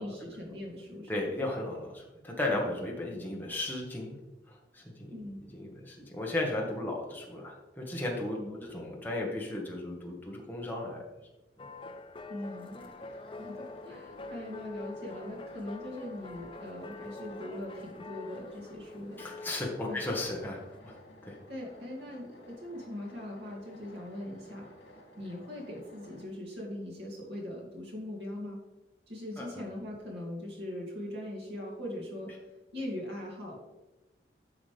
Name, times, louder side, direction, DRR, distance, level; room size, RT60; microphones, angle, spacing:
voice 1, 0.0-1.1 5.1-5.4 8.4-8.7 12.3-12.9 13.4-19.2 19.8-20.0 21.5-24.7 25.2-28.6 29.1-32.3 32.7-33.6, left 1 dB, 65° right, -2 dB, 2.4 m, -41 dB
voice 2, 1.1-4.2 4.5-5.1 5.5-11.0 19.2-20.9 21.2-21.4 29.4-29.5, left 2 dB, 10° left, -2 dB, 1.3 m, -35 dB
sound 1, 11.6-20.8, left 3 dB, 30° left, 0.5 m, -46 dB
sound 2, 12.4-26.2, left 1 dB, 80° left, 2.4 m, -54 dB
9.7 x 6.0 x 3.4 m, 1.0 s
head